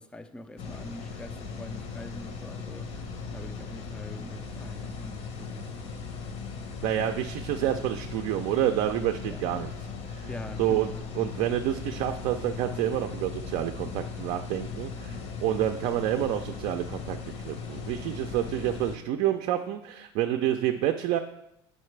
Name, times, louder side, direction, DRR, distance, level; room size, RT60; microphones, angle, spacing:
voice 1, 0.0-2.9 3.3-5.7 9.3-9.4 10.3-10.9, left 1 dB, 5° left, 0.4 m, -44 dB
sound 1, 0.6-19.0, left 5 dB, 50° left, 0.9 m, -38 dB
voice 2, 6.8-9.7 10.1-10.3 10.6-21.2, right 11 dB, 60° right, 0.4 m, -28 dB
6.4 x 5.2 x 3.2 m
hypercardioid pair, 90°, 13 cm